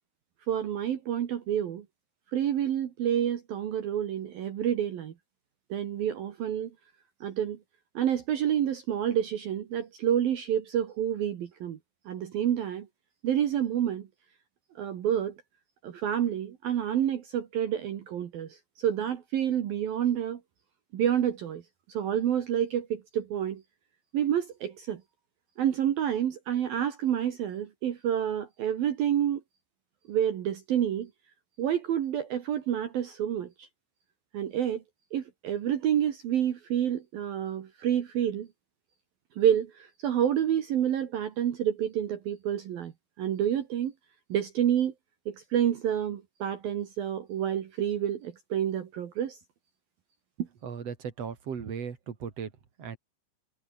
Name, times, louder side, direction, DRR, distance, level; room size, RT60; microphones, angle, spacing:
voice 1, 0.5-1.8 2.3-5.1 5.7-6.7 7.2-7.6 7.9-11.8 12.1-12.9 13.2-14.1 14.8-15.3 15.8-18.5 18.8-20.4 20.9-21.6 21.9-23.6 24.1-25.0 25.6-29.4 30.1-31.1 31.6-33.7 34.3-34.8 35.1-38.5 39.4-39.7 40.0-42.9 43.2-43.9 44.3-44.9 45.3-49.4 50.4-50.5, right 10 dB, 60° right, 3.0 m, -28 dB
voice 2, 50.6-52.5 52.8-53.0, right 6 dB, 40° right, 3.0 m, -37 dB
omnidirectional pair, 5.6 m